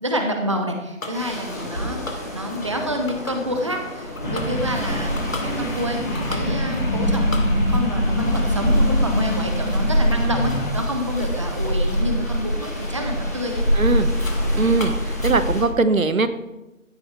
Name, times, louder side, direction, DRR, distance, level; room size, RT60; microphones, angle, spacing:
voice 1, 0.0-13.6, equal, 25° right, 4 dB, 0.7 m, -28 dB
sound 1, 1.0-1.2 1.5-1.7 2.1-2.8 3.1-3.8 4.2-12.9 13.3-13.5 13.9-14.4 14.7-15.7, left 2 dB, 75° left, 2.7 m, -38 dB
sound 2, 1.1-15.6, equal, 10° left, 1.0 m, -24 dB
sound 3, 4.2-10.7, left 1 dB, 40° left, 4.1 m, -28 dB
voice 2, 13.7-14.1 14.5-16.3, right 3 dB, 75° right, 11 dB, 1.3 m, -20 dB
15.0 x 7.8 x 4.7 m, 1.0 s
figure-of-eight pair, 165°, 41 cm